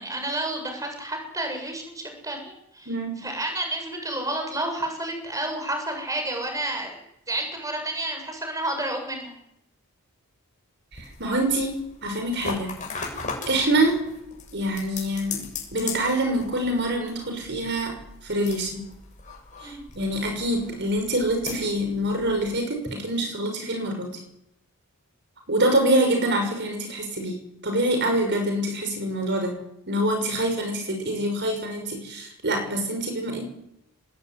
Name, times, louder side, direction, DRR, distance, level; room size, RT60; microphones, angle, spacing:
voice 1, 0.0-7.0 7.3-9.3 19.6-19.8, right 1 dB, 15° right, 4 dB, 7.2 m, -30 dB
voice 2, 2.9-3.2 10.9-12.7 13.5-14.0 14.5-15.4 15.7-18.0 18.2-18.9 19.6-24.2 25.5-29.6 29.9-33.4, right 1 dB, 50° right, 4 dB, 6.0 m, -25 dB
sound 1, 10.9-22.6, left 5 dB, 35° left, 6.9 m, -39 dB
26.0 x 20.5 x 9.9 m, 0.81 s
head